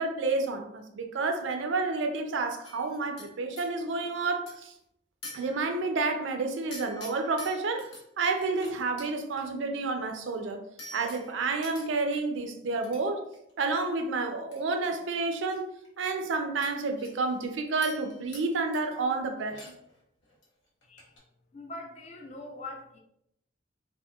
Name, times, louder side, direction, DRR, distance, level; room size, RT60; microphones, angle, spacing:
voice 1, 0.0-4.7 5.3-10.6 10.9-13.3 13.6-15.7 16.0-19.7, right 3 dB, 70° right, 5 dB, 0.4 m, -30 dB
sound 1, 2.6-3.7 4.5-4.8 5.2-6.0 6.7-8.0 8.4-9.5 10.8-12.2 12.8-13.0 13.3-13.7 14.5-14.6 14.9-15.6 15.8-15.9 16.6-17.5 17.8-18.5 18.7-19.1 19.4-20.0 20.2-20.5 20.8-21.2, left 2 dB, 85° left, 0.9 m, -47 dB
voice 2, 21.5-23.0, left 2 dB, 35° left, 2 dB, 0.4 m, -42 dB
3.5 x 2.1 x 2.3 m, 0.76 s
head